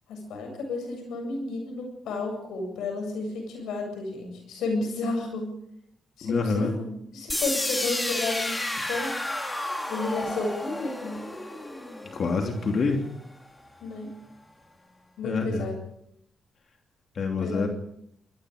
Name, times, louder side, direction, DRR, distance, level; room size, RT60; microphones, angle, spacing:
voice 1, 0.1-5.5 6.2-8.6 8.9-9.1 9.9-11.2 13.8-14.1 15.2-15.9 17.4-17.7, left 3 dB, 85° left, 4 dB, 7.8 m, -32 dB
voice 2, 6.2-6.7 12.1-13.0 15.2-15.7 17.2-17.7, left 4 dB, 55° left, 3 dB, 3.0 m, -26 dB
sound 1, 7.3-13.2, left 1 dB, 15° left, 3.3 m, -32 dB
27.5 x 21.0 x 5.1 m, 0.73 s
cardioid pair, 75°, 0 cm